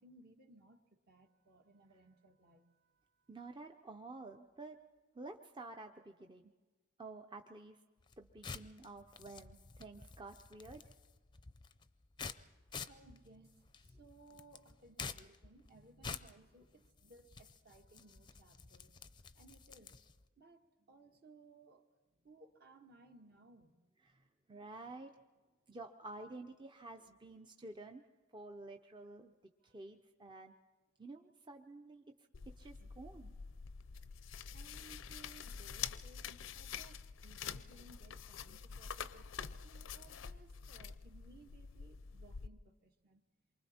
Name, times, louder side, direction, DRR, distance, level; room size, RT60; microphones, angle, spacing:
voice 1, 0.0-3.3 12.7-18.9 19.3-19.9 20.4-21.9 22.2-23.8 29.6-29.8 34.5-39.3 39.6-43.2, right 2 dB, 50° right, 4 dB, 1.6 m, -62 dB
voice 2, 3.3-4.8 5.1-6.5 7.0-7.8 8.2-10.8 24.0-25.1 25.7-28.0 28.3-29.3 29.6-30.5 31.0-32.0 32.6-33.3, right 2 dB, 25° right, 4 dB, 0.7 m, -51 dB
sound 1, 8.0-20.3, left 5 dB, 25° left, 0.6 m, -50 dB
sound 2, 32.3-42.5, left 7 dB, 75° left, 0.6 m, -47 dB
27.5 x 24.0 x 4.3 m, 1.3 s
head